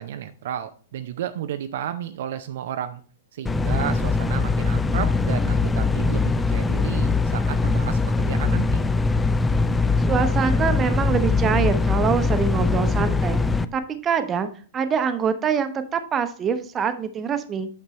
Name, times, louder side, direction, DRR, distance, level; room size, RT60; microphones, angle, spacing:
voice 1, 0.0-3.0 3.3-8.8, right 10 dB, 55° right, 10 dB, 0.4 m, -32 dB
sound 1, 3.5-13.7, left 3 dB, 10° left, 0.4 m, -22 dB
voice 2, 10.1-13.4 13.7-17.7, right 7 dB, 20° right, 10 dB, 0.8 m, -24 dB
8.8 x 6.5 x 3.1 m, 0.43 s
figure-of-eight pair, 105°, 0 cm